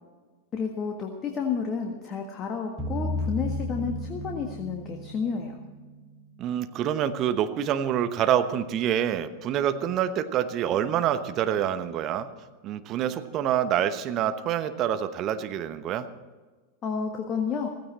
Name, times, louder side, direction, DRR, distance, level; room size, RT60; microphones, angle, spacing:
voice 1, 0.5-5.6 16.8-17.7, left 6 dB, 30° left, 2 dB, 1.6 m, -31 dB
sound 1, 2.8-6.5, left 1 dB, 5° left, 3.8 m, -33 dB
voice 2, 6.4-12.3 12.6-16.1, right 10 dB, 35° right, 10 dB, 1.0 m, -26 dB
16.0 x 16.0 x 4.2 m, 1.4 s
figure-of-eight pair, 90°, 0 cm